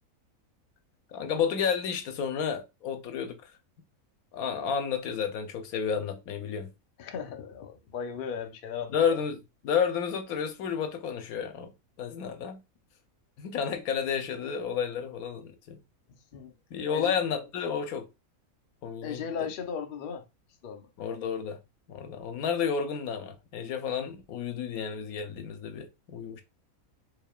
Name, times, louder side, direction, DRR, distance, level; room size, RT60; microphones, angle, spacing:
voice 1, 1.1-3.5 4.3-6.7 8.9-11.7 12.0-12.6 13.4-15.8 16.7-18.1 18.8-19.2 21.0-21.6 21.9-26.4, left 7 dB, 85° left, 1.2 m, -31 dB
voice 2, 7.0-9.0 16.1-16.5 16.9-17.1 19.0-20.2 20.6-20.9, left 7 dB, 55° left, 0.6 m, -36 dB
4.8 x 3.1 x 2.3 m
omnidirectional pair, 1.5 m